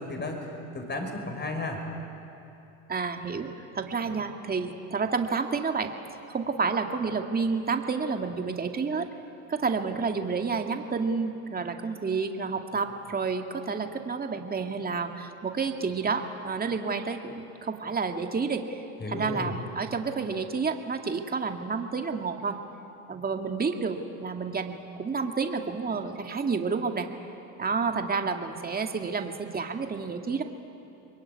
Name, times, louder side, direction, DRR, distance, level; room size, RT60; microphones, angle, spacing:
voice 1, 0.0-1.8 19.0-19.5, left 2 dB, 25° left, 4 dB, 5.9 m, -34 dB
voice 2, 2.9-5.9 6.3-9.1 9.5-18.8 19.1-22.6 23.1-27.1 27.6-30.4, right 5 dB, 25° right, 4 dB, 2.2 m, -30 dB
25.5 x 21.5 x 9.7 m, 3.0 s
supercardioid pair, 90°, 39 cm